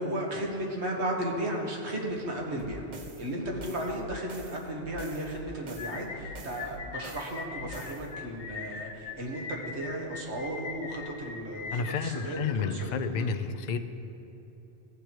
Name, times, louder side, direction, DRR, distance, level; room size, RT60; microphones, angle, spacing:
voice 1, 0.0-2.8 3.2-13.3, right 1 dB, 75° right, -1 dB, 1.6 m, -35 dB
sound 1, 2.6-8.1, right 1 dB, 45° right, 0.8 m, -45 dB
sound 2, 5.8-13.1, left 5 dB, 85° left, 1.0 m, -41 dB
voice 2, 11.7-13.8, left 5 dB, 55° left, 9 dB, 0.5 m, -30 dB
16.0 x 6.8 x 3.0 m, 3.0 s
omnidirectional pair, 1.1 m